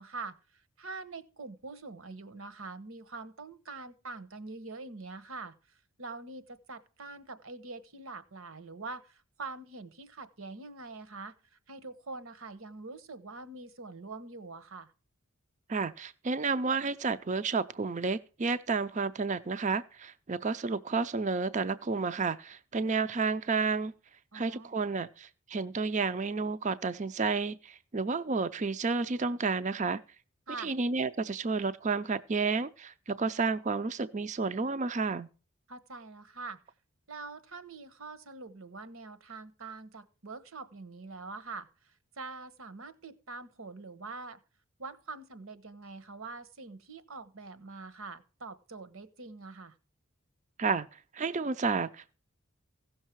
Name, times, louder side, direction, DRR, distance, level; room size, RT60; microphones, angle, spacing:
voice 1, 0.0-14.9 24.3-24.7 30.5-30.7 35.7-36.6 37.1-44.4 44.8-49.8, right 3 dB, 70° right, 1.2 m, -44 dB
voice 2, 15.7-23.9 24.3-30.0 30.6-35.3 50.6-52.1, right 4 dB, 35° right, 0.5 m, -31 dB
16.0 x 6.5 x 4.6 m
head